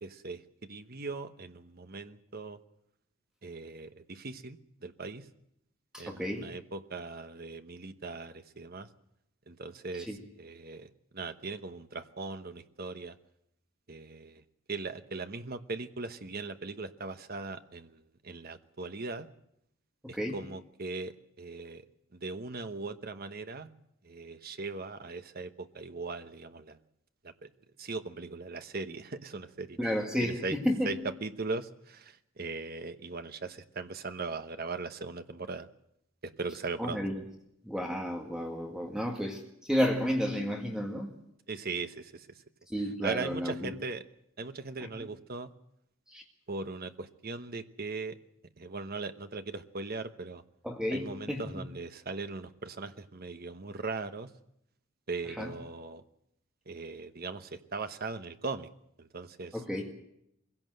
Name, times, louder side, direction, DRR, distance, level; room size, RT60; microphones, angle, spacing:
voice 1, 0.0-0.4 0.7-2.6 3.4-5.3 6.0-8.9 9.5-13.2 13.9-19.3 20.1-21.8 22.1-23.7 24.0-26.8 27.2-27.5 27.8-30.6 30.8-35.7 36.2-37.0 41.5-42.3 43.0-44.0 44.4-45.5 46.5-48.2 48.6-50.4 50.9-54.3 55.1-56.0 56.7-58.7 59.0-59.6, right 3 dB, 45° right, 9 dB, 1.1 m, -39 dB
voice 2, 5.9-6.5 10.1-10.2 20.0-20.4 29.8-30.9 36.8-37.2 37.6-41.1 42.7-43.8 46.1-46.2 50.6-51.7 55.4-55.5 59.5-59.9, equal, 5° right, 2 dB, 1.8 m, -32 dB
22.5 x 16.5 x 7.8 m, 0.79 s
head